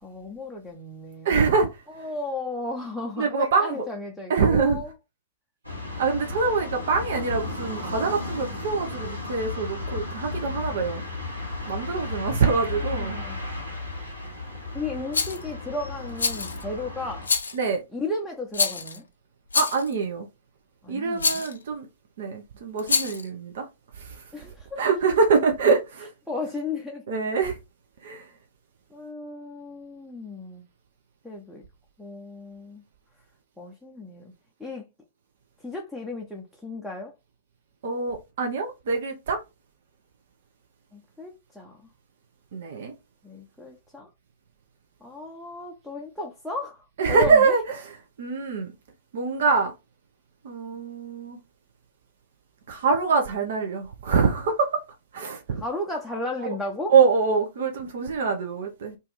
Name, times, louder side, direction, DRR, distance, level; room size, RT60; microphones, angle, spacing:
voice 1, 0.0-1.5 1.9-4.9 12.7-13.4 14.7-17.3 17.9-19.0 20.8-21.4 24.3-24.8 26.3-27.1 28.9-30.7 31.2-31.6 32.0-32.8 33.6-34.3 34.6-34.9 35.6-37.1 40.9-41.8 43.2-44.1 45.0-47.6 55.5-56.9, left 2 dB, ahead, 0.6 m, -34 dB
voice 2, 1.2-1.7 3.2-3.8 4.3-4.8 6.0-11.0 11.7-13.2 17.5-17.8 19.5-20.3 20.9-21.9 22.2-23.7 24.0-24.2 24.8-26.1 27.1-27.6 28.0-28.3 37.8-39.4 42.5-42.9 47.0-47.6 48.2-48.7 49.1-49.7 50.4-51.4 52.7-54.8 55.1-55.6 56.9-59.0, right 5 dB, 55° right, 0.6 m, -24 dB
sound 1, 5.6-17.3, left 2 dB, 90° right, 1.2 m, -34 dB
Rattle, 15.1-15.4 16.2-16.6 17.2-17.6 18.5-19.0 19.5-19.9 21.2-21.5 22.8-23.3, left 4 dB, 75° left, 0.5 m, -25 dB
2.7 x 2.5 x 3.9 m
figure-of-eight pair, 105°, 0 cm